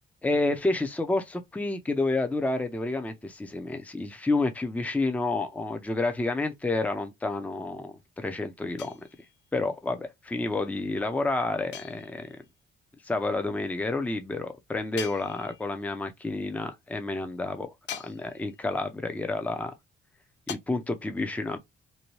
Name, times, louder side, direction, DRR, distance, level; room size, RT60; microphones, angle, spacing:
voice 1, 0.2-8.9 9.5-12.4 13.0-19.7 20.5-21.6, left 2 dB, 5° left, 0.5 m, -29 dB
sound 1, 8.8-9.5 11.7-12.5 15.0-15.9 17.9-18.7 20.5-20.6, left 9 dB, 65° left, 0.5 m, -42 dB
2.7 x 2.2 x 3.0 m
cardioid pair, 90°, 20 cm